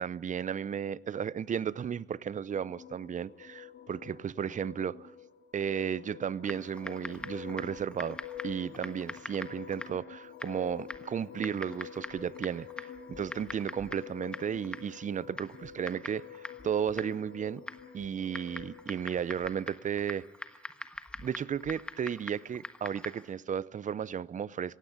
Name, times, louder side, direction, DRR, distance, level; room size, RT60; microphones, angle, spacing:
voice 1, 0.0-5.1 5.5-8.2 8.4-17.6 17.9-20.3 21.2-24.8, right 8 dB, 40° right, 0.6 m, -34 dB
sound 1, 2.5-18.9, left 9 dB, 65° left, 2.0 m, -48 dB
Typing, 6.4-23.3, left 1 dB, 5° left, 1.3 m, -45 dB
17.0 x 16.5 x 9.4 m
cardioid pair, 90°, 20 cm